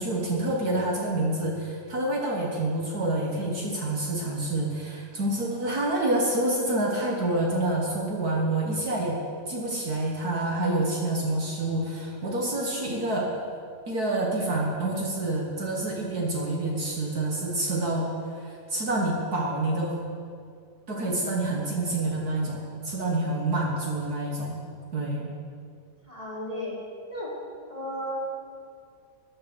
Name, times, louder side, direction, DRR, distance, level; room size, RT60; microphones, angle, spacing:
voice 1, 0.0-9.2 9.5-13.3 13.9-20.0 20.9-24.6 24.9-25.3, right 2 dB, 55° right, -2 dB, 2.0 m, -27 dB
voice 2, 26.1-26.7 27.1-27.3 27.7-28.1, equal, 20° left, -6 dB, 3.1 m, -34 dB
13.5 x 9.3 x 6.1 m, 2.3 s
omnidirectional pair, 2.1 m